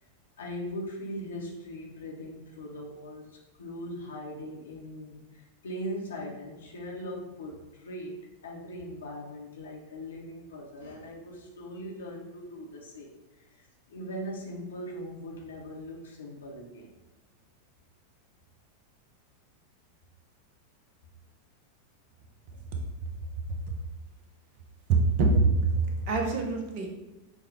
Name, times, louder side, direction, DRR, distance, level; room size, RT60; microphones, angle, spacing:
voice 1, 0.4-16.9, equal, 65° left, -2 dB, 0.8 m, -40 dB
voice 2, 24.9-26.9, right 3 dB, 45° right, 2 dB, 0.8 m, -24 dB
6.3 x 2.3 x 3.3 m, 0.99 s
figure-of-eight pair, 90°, 0 cm